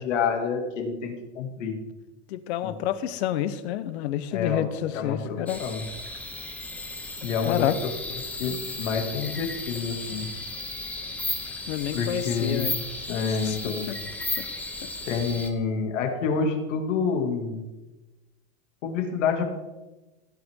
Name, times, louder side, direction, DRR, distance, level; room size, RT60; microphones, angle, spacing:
voice 1, 0.0-1.8 2.6-2.7 4.3-5.8 7.2-10.3 11.9-12.7 13.1-13.9 15.1-17.6 18.8-19.4, left 5 dB, 85° left, 3 dB, 2.5 m, -28 dB
voice 2, 2.3-5.6 7.5-7.8 11.7-12.7 13.4-13.6 14.4-14.5 14.8-14.9, left 12 dB, 60° left, 13 dB, 1.0 m, -28 dB
sound 1, 5.5-15.5, left 2 dB, 5° left, 0.7 m, -35 dB
16.0 x 9.1 x 3.7 m, 1.1 s
supercardioid pair, 160°, 36 cm